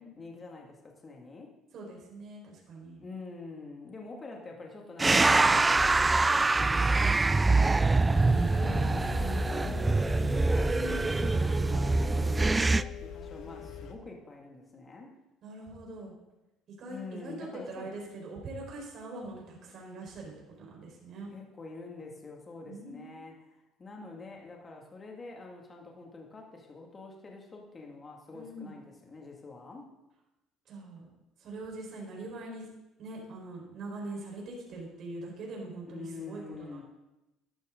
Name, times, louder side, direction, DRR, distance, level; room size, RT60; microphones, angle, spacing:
voice 1, 0.0-1.5 3.0-10.7 11.2-15.1 16.9-17.9 21.3-23.4 23.8-29.9 35.9-36.8, left 3 dB, 30° left, 0 dB, 2.4 m, -46 dB
voice 2, 1.7-3.0 10.7-11.3 15.4-16.1 16.7-21.3 22.6-23.2 28.3-28.8 30.6-31.1 31.4-32.7 33.0-36.8, right 2 dB, 55° right, -2 dB, 4.8 m, -43 dB
sound 1, 5.0-12.8, right 3 dB, 20° right, 0.4 m, -24 dB
sound 2, 8.1-13.9, left 6 dB, 70° left, 1.6 m, -41 dB
13.0 x 12.0 x 3.9 m, 0.97 s
supercardioid pair, 95°, 0 cm